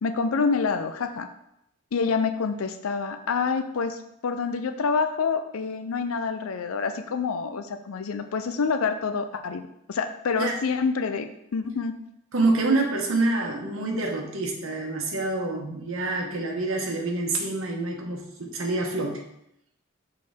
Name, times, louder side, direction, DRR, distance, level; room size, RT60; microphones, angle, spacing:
voice 1, 0.0-1.3 1.9-12.0, left 5 dB, 85° left, 9 dB, 0.5 m, -27 dB
voice 2, 12.3-19.2, right 2 dB, 80° right, 0 dB, 1.0 m, -27 dB
6.4 x 4.4 x 3.6 m, 0.79 s
head